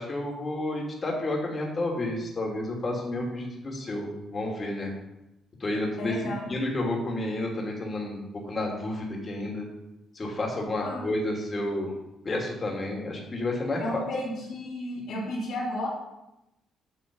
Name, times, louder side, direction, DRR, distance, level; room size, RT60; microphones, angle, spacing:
voice 1, 0.0-4.9 5.6-6.2 6.5-9.7 10.1-11.9 12.2-14.0, left 1 dB, 35° left, 0 dB, 2.9 m, -30 dB
voice 2, 6.0-6.5 10.8-11.1 13.8-15.9, left 1 dB, 75° left, -7 dB, 2.7 m, -33 dB
7.9 x 7.6 x 5.4 m, 0.91 s
cardioid pair, 90°, 0 cm